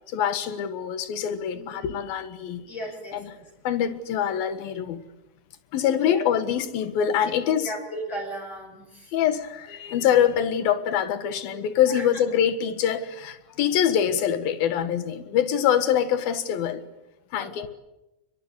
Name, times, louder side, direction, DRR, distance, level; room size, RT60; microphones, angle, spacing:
voice 1, 0.1-2.6 3.1-3.3 3.6-5.0 5.7-7.7 9.1-16.8 17.3-17.7, left 9 dB, 65° left, 3.2 m, -24 dB
voice 2, 2.7-3.5 6.0-6.2 7.6-9.1 11.5-11.6 11.9-12.0 17.4-17.5, equal, 35° left, 6.9 m, -36 dB
30.0 x 23.0 x 8.3 m
omnidirectional pair, 4.8 m